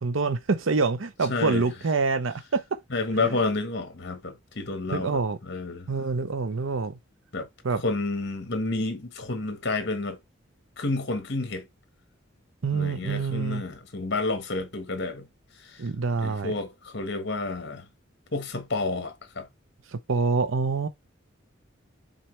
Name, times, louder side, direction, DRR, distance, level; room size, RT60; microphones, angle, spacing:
voice 1, 0.0-2.6 3.2-3.3 4.9-5.4 5.9-7.0 7.6-7.8 12.6-13.6 15.8-16.5 19.9-20.9, right 4 dB, 80° right, 0.7 m, -26 dB
voice 2, 1.3-1.7 2.9-5.9 7.3-7.5 7.8-10.2 10.8-11.6 12.7-15.3 15.6-15.8 16.2-17.8 18.3-19.5, left 3 dB, 60° left, 1.5 m, -30 dB
8.8 x 4.0 x 3.3 m
head